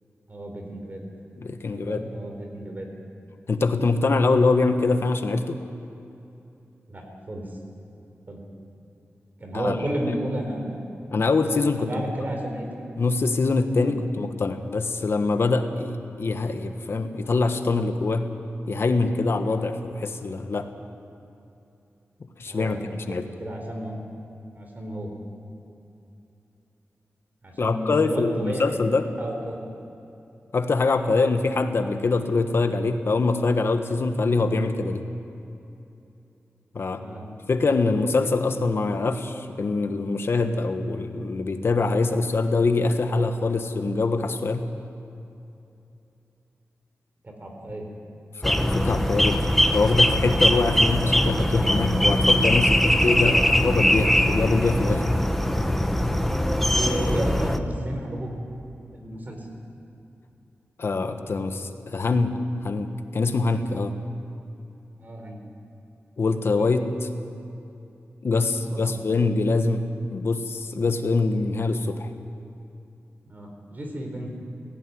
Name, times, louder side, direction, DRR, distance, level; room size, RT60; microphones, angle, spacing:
voice 1, 0.3-1.0 1.7-2.9 6.9-7.5 8.3-8.4 9.4-10.8 11.8-12.7 13.8-13.9 22.5-23.9 24.5-25.1 27.4-29.5 37.0-37.3 47.2-47.9 53.1-53.5 56.7-58.3 58.9-59.4 65.0-65.4 66.6-66.7 68.7-68.9 73.3-74.3, right 1 dB, 40° right, 2 dB, 4.2 m, -32 dB
voice 2, 1.4-2.1 3.5-5.6 9.5-9.8 11.1-12.0 13.0-18.3 18.7-20.7 22.4-23.2 27.6-29.1 30.5-35.0 36.7-37.0 37.5-44.6 48.4-49.5 49.7-55.0 60.8-63.9 66.2-66.8 68.2-72.1, left 3 dB, 60° left, 7 dB, 1.4 m, -24 dB
sound 1, 48.4-57.6, left 1 dB, 5° left, 1.1 m, -21 dB
17.5 x 16.5 x 9.5 m, 2.8 s
wide cardioid pair, 100°, 5 cm